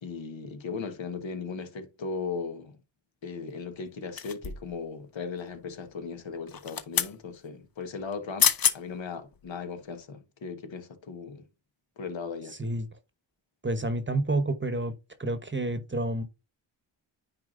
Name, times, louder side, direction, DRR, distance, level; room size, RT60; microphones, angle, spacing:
voice 1, 0.0-2.8 3.2-11.4 12.0-12.5, left 5 dB, 70° left, 1.4 m, -37 dB
sound 1, 4.2-4.8 6.5-7.2 8.1-8.2 8.4-8.8 9.3-9.5, left 8 dB, 45° left, 0.9 m, -26 dB
voice 2, 13.6-14.9 15.2-16.2, right 2 dB, 25° right, 1.0 m, -29 dB
9.6 x 4.4 x 2.6 m
cardioid pair, 70°, 47 cm